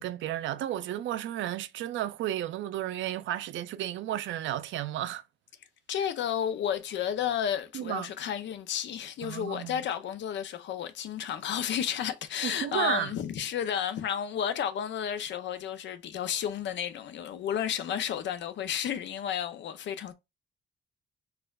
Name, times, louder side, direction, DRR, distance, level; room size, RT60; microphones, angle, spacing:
voice 1, 0.0-5.2 7.7-8.1 9.2-9.8 12.4-13.1, right 12 dB, 70° right, 0.4 m, -33 dB
voice 2, 5.9-20.1, left 9 dB, 65° left, 0.6 m, -32 dB
4.3 x 2.4 x 2.3 m
cardioid pair, 90°, 20 cm